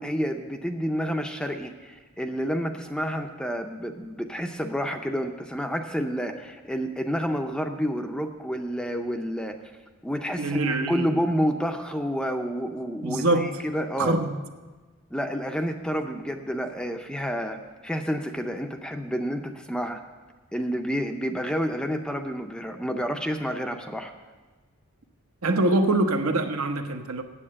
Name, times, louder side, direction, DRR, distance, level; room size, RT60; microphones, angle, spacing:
voice 1, 0.0-9.6 10.0-14.2 15.1-17.6 17.8-20.0 20.5-24.1, equal, 5° left, 5 dB, 0.5 m, -29 dB
voice 2, 10.4-11.1 13.0-13.6 14.0-14.3 25.4-27.2, right 2 dB, 75° right, 6 dB, 0.9 m, -24 dB
8.7 x 7.5 x 8.6 m, 1.3 s
head